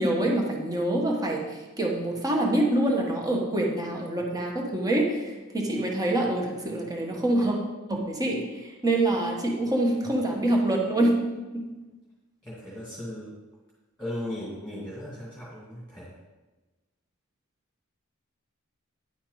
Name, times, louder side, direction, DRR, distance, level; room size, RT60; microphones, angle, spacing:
voice 1, 0.0-7.6 7.9-11.2 11.5-11.7, right 1 dB, 20° right, 0 dB, 1.5 m, -26 dB
voice 2, 12.4-13.3 14.0-16.2, left 1 dB, 5° left, -7 dB, 2.3 m, -37 dB
10.5 x 8.4 x 4.0 m, 1.2 s
head